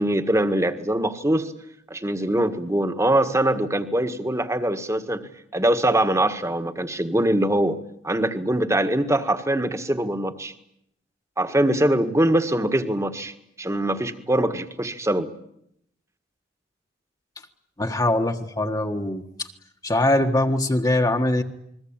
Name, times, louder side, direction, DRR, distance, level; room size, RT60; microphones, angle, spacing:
voice 1, 0.0-1.5 1.9-7.8 8.0-10.5 11.4-15.3, right 1 dB, 15° right, 9 dB, 1.7 m, -23 dB
voice 2, 17.8-19.5 19.8-21.4, left 1 dB, 20° left, 3 dB, 1.5 m, -22 dB
29.5 x 21.5 x 8.9 m, 0.76 s
head